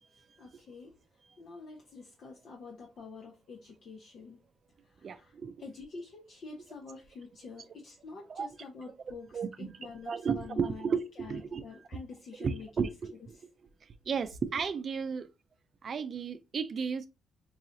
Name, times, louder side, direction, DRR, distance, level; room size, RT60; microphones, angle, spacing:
voice 1, 0.4-1.0 1.4-4.4 4.8-12.9 13.3-13.4, left 4 dB, 60° left, 0.9 m, -47 dB
voice 2, 5.0-5.6 8.3-8.5 9.3-9.7 10.1-11.6 12.4-13.4 14.1-15.3 15.8-17.1, right 6 dB, 50° right, 0.4 m, -33 dB
4.7 x 2.5 x 2.8 m
cardioid pair, 90°, 0 cm